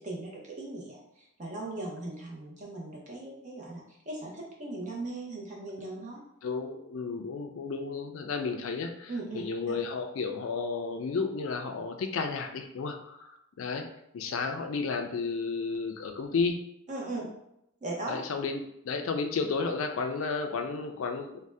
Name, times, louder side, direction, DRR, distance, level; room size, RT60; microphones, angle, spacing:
voice 1, 0.0-6.2 9.1-9.7 16.9-17.3 17.8-18.2, right 2 dB, 35° right, -3 dB, 0.7 m, -38 dB
voice 2, 6.4-16.6 18.1-21.5, left 4 dB, 75° left, 5 dB, 0.4 m, -32 dB
2.6 x 2.1 x 3.3 m, 0.79 s
head